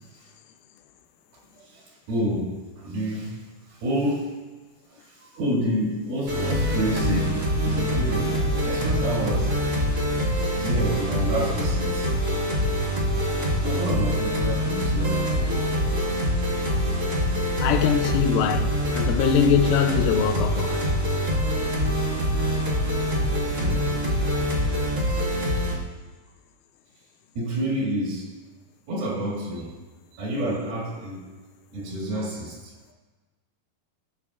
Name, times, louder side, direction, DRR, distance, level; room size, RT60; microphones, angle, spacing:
voice 1, 1.6-4.5 4.9-9.6 10.6-12.1 13.6-15.9 23.0-23.2 23.5-24.0 24.7-24.8 27.4-28.4 28.9-29.8 30.1-31.3 31.7-32.7, right 1 dB, 70° right, 3.7 m, -29 dB
sound 1, 6.3-25.7, equal, 35° right, 1.6 m, -25 dB
voice 2, 17.6-20.8, left 8 dB, 80° left, 2.2 m, -22 dB
16.5 x 6.7 x 2.4 m
omnidirectional pair, 4.5 m